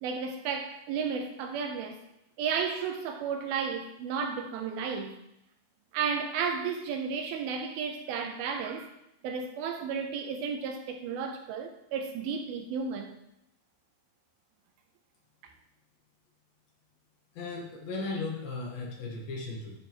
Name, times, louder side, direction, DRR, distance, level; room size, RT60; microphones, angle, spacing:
voice 1, 0.0-2.0 2.4-5.2 5.9-8.9 9.2-13.2, right 6 dB, 90° right, 2.6 m, -33 dB
voice 2, 17.3-19.8, left 3 dB, 75° left, 3.3 m, -36 dB
11.0 x 5.4 x 3.1 m
omnidirectional pair, 4.3 m